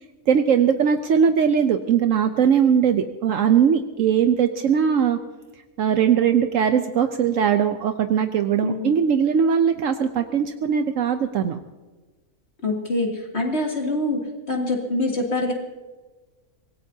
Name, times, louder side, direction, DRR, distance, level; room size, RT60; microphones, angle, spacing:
voice 1, 0.3-5.2 5.8-11.6, right 7 dB, 70° right, 8 dB, 1.1 m, -20 dB
voice 2, 12.6-14.2 14.5-15.5, left 2 dB, 50° left, -1 dB, 2.9 m, -24 dB
25.0 x 18.0 x 2.8 m, 1.2 s
omnidirectional pair, 1.4 m